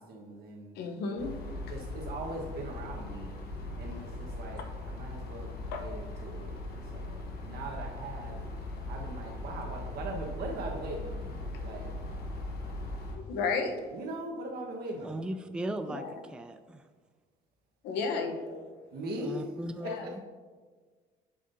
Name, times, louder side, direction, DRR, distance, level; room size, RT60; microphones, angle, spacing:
voice 1, 0.0-0.8 1.7-3.4 3.8-8.4 8.9-11.3 11.6-11.9 13.4-13.5 13.9-15.2 18.9-19.5 19.8-20.2, right 1 dB, 65° right, 1 dB, 1.4 m, -40 dB
voice 2, 0.7-1.3 5.7-5.8 13.1-13.7 15.9-16.1 17.8-18.7 19.8-20.1, left 4 dB, 85° left, 4 dB, 0.9 m, -33 dB
sound 1, 1.2-13.2, left 2 dB, 65° left, 1.4 m, -39 dB
voice 3, 15.0-16.8 19.2-20.2, right 1 dB, 5° right, 8 dB, 0.3 m, -38 dB
7.6 x 7.3 x 2.7 m, 1.5 s
cardioid pair, 110°, 17 cm